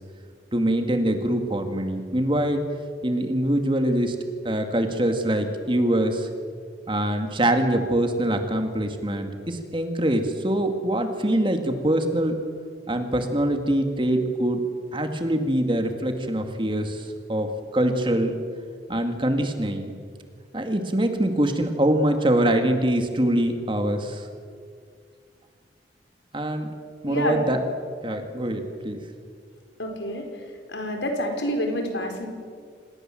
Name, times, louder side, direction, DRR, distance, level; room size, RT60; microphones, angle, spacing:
voice 1, 0.5-2.6 3.0-4.2 4.4-6.3 6.9-12.3 12.9-14.7 14.9-18.4 18.9-19.9 20.5-24.3 26.3-26.7 27.0-27.6 28.0-29.0, right 1 dB, 25° right, 6 dB, 2.2 m, -24 dB
voice 2, 27.1-27.4 29.8-30.2 30.7-32.3, equal, 80° left, 4 dB, 4.7 m, -27 dB
26.5 x 20.0 x 7.8 m, 2.1 s
head